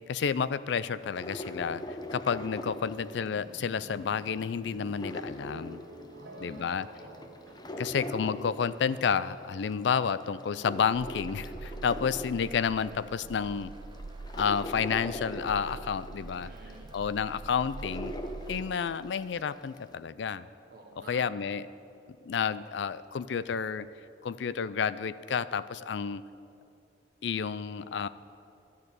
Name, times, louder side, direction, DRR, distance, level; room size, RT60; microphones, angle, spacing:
voice 1, 0.1-5.8 6.4-6.9 7.8-13.7 14.4-16.5 16.9-18.1 18.5-20.5 21.0-21.7 22.2-23.9 24.2-26.2 27.2-28.1, left 6 dB, 65° left, 16 dB, 0.4 m, -30 dB
sound 1, 1.0-3.7 4.0-6.4 6.8-9.4 9.8-12.9 13.5-13.6 13.9-19.1 19.5-19.6, left 1 dB, 20° left, 0.6 m, -41 dB
sound 2, 3.2-17.0, equal, 75° right, 1.8 m, -53 dB
voice 2, 6.1-7.3 16.4-17.0 20.7-21.3, right 2 dB, 50° right, -1 dB, 1.1 m, -50 dB
sound 3, 10.9-18.7, right 3 dB, 25° right, 0.3 m, -44 dB
12.0 x 6.7 x 8.8 m, 2.6 s
head